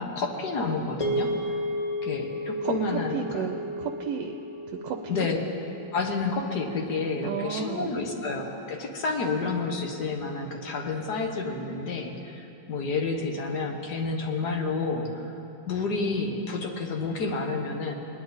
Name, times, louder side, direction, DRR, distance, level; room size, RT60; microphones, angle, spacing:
voice 1, 0.0-1.6 2.0-3.4 5.1-5.4 5.9-15.3 15.7-17.9, left 3 dB, 65° left, 2 dB, 1.7 m, -30 dB
sound 1, 1.0-9.3, left 1 dB, 20° left, 0.9 m, -35 dB
voice 2, 2.6-4.3 4.7-5.3 7.2-8.0, right 7 dB, 80° right, 3 dB, 1.3 m, -33 dB
20.0 x 10.5 x 4.0 m, 2.7 s
omnidirectional pair, 2.0 m